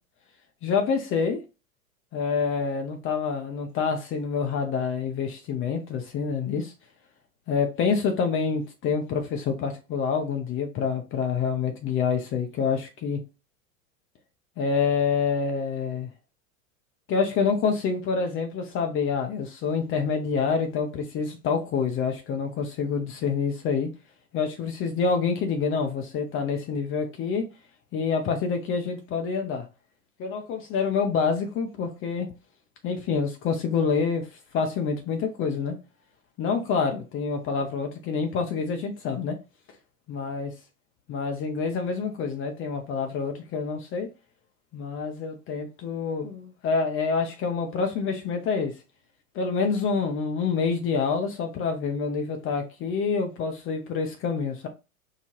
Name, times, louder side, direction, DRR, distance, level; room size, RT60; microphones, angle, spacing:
voice 1, 0.6-1.4 2.1-6.7 7.5-13.2 14.6-16.1 17.1-23.9 24.3-27.4 27.9-29.7 30.2-32.3 32.8-34.3 34.5-35.8 36.4-39.4 40.1-40.5 41.1-44.1 44.7-48.7 49.3-54.7, left 5 dB, 30° left, 0.6 m, -27 dB
4.7 x 2.3 x 2.9 m
hypercardioid pair, 90°, 41 cm